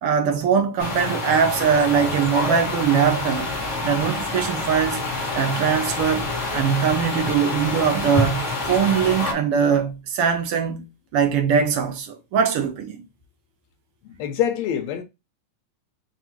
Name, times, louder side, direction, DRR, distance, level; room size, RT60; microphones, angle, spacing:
voice 1, 0.0-3.5 3.8-5.0 5.3-10.9 11.1-13.0, right 7 dB, 80° right, 1.3 m, -21 dB
sound 1, 0.8-9.3, left 2 dB, 35° left, 1.3 m, -27 dB
voice 2, 14.2-15.0, left 10 dB, 75° left, 1.7 m, -24 dB
5.8 x 3.1 x 3.0 m
omnidirectional pair, 3.5 m